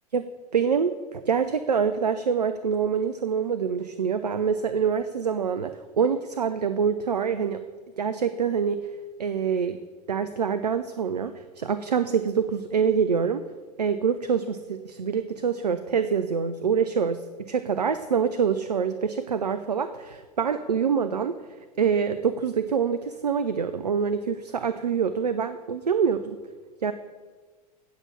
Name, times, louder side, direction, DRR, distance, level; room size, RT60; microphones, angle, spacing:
voice 1, 0.5-7.6 8.0-8.9 9.2-9.8 10.1-13.4 13.8-21.4 21.8-26.4 26.8-26.9, right 6 dB, 85° right, 10 dB, 0.4 m, -25 dB
8.7 x 5.6 x 7.6 m, 1.4 s
figure-of-eight pair, 80°, 20 cm